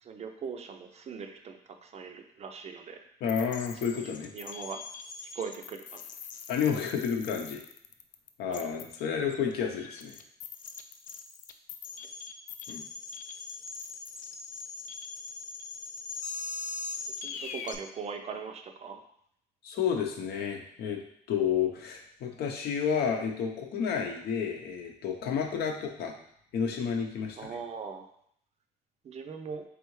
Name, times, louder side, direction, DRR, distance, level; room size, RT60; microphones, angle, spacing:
voice 1, 0.0-3.0 3.9-4.8 5.2-6.0 8.4-8.7 17.2-19.0 27.4-28.1 29.0-29.6, right 5 dB, 40° right, 5 dB, 0.5 m, -40 dB
voice 2, 3.2-4.3 6.5-7.6 8.4-10.2 12.7-12.8 19.6-21.0 21.3-26.1 26.5-27.4, left 7 dB, 70° left, 2 dB, 0.7 m, -30 dB
sound 1, 3.3-17.8, left 4 dB, 50° left, 0.4 m, -41 dB
3.8 x 3.4 x 3.1 m, 0.69 s
cardioid pair, 110°, 17 cm